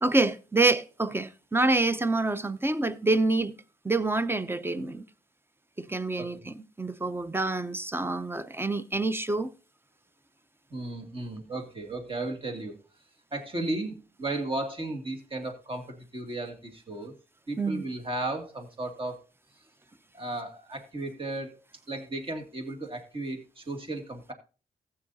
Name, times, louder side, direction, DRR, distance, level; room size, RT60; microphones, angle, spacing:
voice 1, 0.0-3.5 3.8-5.0 5.8-9.5 13.6-13.8 17.6-17.8, right 2 dB, 15° right, 0.7 m, -27 dB
voice 2, 10.7-12.8 13.3-17.1 17.5-19.2 20.1-21.6 21.9-24.3, right 2 dB, 35° right, 2.3 m, -35 dB
14.5 x 8.6 x 2.7 m
cardioid pair, 65°, 15 cm